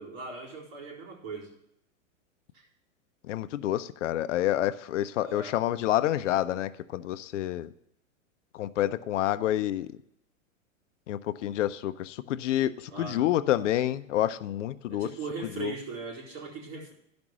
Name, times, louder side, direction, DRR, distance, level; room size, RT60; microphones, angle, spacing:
voice 1, 0.0-1.5 5.2-5.6 12.9-13.3 14.9-16.9, right 4 dB, 50° right, -2 dB, 4.3 m, -39 dB
voice 2, 3.3-7.7 8.5-9.9 11.1-15.1 15.6-15.7, left 13 dB, 65° left, 14 dB, 0.6 m, -28 dB
12.0 x 5.2 x 6.2 m, 0.76 s
hypercardioid pair, 120°, 39 cm